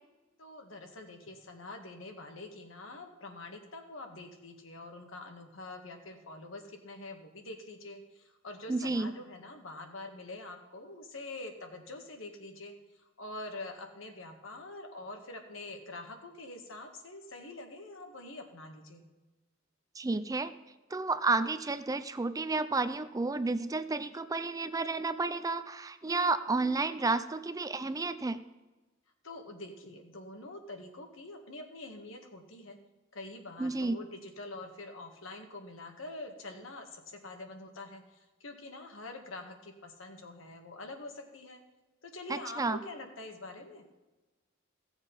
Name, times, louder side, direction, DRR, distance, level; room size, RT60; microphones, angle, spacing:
voice 1, 0.4-19.0 29.2-32.8 33.1-41.6 42.0-43.8, left 2 dB, 80° left, 4 dB, 1.8 m, -45 dB
voice 2, 8.7-9.1 20.0-20.5 20.9-28.4 33.6-34.0 42.3-42.8, right 3 dB, 20° right, 12 dB, 0.4 m, -31 dB
15.5 x 7.2 x 5.4 m, 1.2 s
head